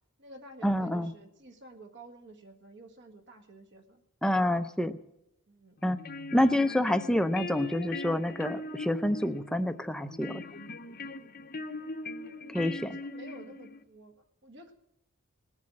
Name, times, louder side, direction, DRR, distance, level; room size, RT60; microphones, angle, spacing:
voice 1, 0.0-4.0 5.5-5.8 12.1-12.6 12.9-14.7, right 1 dB, 55° right, 5 dB, 1.7 m, -51 dB
voice 2, 0.6-1.1 4.2-5.0 5.8-6.0 6.3-10.4 12.5-13.0, left 1 dB, 5° left, 9 dB, 0.5 m, -28 dB
sound 1, 5.8-13.8, left 2 dB, 40° left, 0.7 m, -40 dB
19.5 x 7.3 x 7.7 m, 0.84 s
head